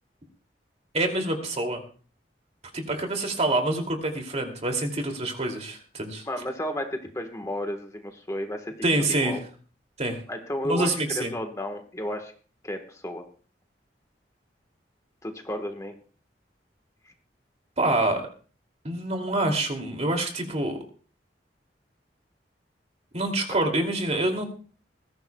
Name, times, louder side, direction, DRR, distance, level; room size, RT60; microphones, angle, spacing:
voice 1, 0.9-1.8 2.7-6.2 8.8-9.4 10.0-10.2 10.6-11.3 17.8-18.2 18.8-20.8 23.1-24.4, right 2 dB, 40° right, 3 dB, 2.6 m, -26 dB
voice 2, 6.3-9.4 10.3-12.3 12.6-13.3 15.2-15.9, left 1 dB, 20° left, 5 dB, 1.4 m, -33 dB
20.0 x 15.0 x 2.3 m, 0.41 s
head